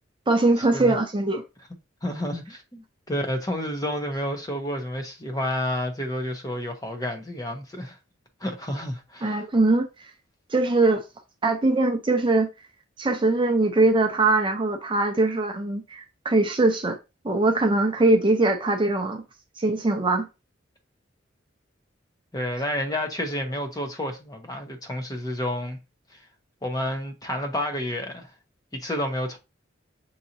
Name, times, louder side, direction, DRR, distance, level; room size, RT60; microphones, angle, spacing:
voice 1, 0.3-1.4 9.2-9.8 10.5-11.0 11.4-12.5 13.0-17.0 17.2-19.2 19.6-20.3, right 2 dB, 25° right, 0.5 m, -21 dB
voice 2, 2.0-8.0 8.4-9.4 22.3-25.8 26.6-28.3 28.7-29.4, left 1 dB, 20° left, 0.8 m, -30 dB
6.2 x 2.9 x 2.6 m
head